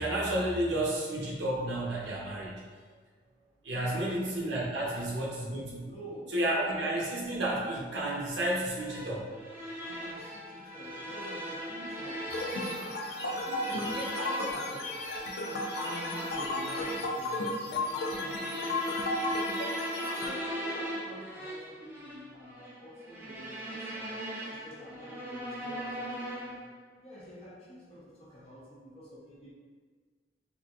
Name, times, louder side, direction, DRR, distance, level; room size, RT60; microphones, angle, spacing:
voice 1, 0.0-2.6 3.6-5.9 6.3-9.3, right 1 dB, 90° right, -3 dB, 0.8 m, -31 dB
voice 2, 3.7-4.2 4.6-5.0 5.8-6.7 9.8-19.3 19.9-24.0 24.4-26.6 27.0-29.5, equal, 35° left, -8 dB, 1.0 m, -47 dB
sound 1, 8.7-26.7, equal, 15° right, 0.6 m, -39 dB
Wind instrument woodwind instrument, 10.1-16.0, equal, 60° right, 1.2 m, -48 dB
sound 2, 12.3-20.3, left 2 dB, 60° left, 0.4 m, -35 dB
3.9 x 2.5 x 2.4 m, 1.5 s
head